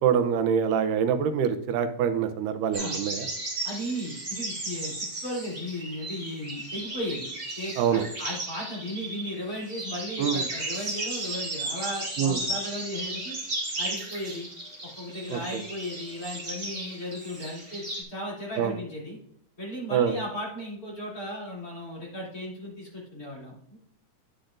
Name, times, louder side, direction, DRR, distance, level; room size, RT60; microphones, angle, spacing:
voice 1, 0.0-3.3 7.8-8.0 10.2-10.4 12.2-12.4 15.3-15.4 18.6-18.7 19.9-20.2, right 8 dB, 85° right, 9 dB, 2.3 m, -25 dB
sound 1, 2.7-18.0, right 2 dB, 25° right, 1.9 m, -35 dB
voice 2, 3.6-7.3 7.6-13.3 13.8-14.5 14.8-19.2 19.6-23.5, equal, 30° left, -5 dB, 3.0 m, -36 dB
10.0 x 8.2 x 2.5 m, 0.67 s
omnidirectional pair, 3.7 m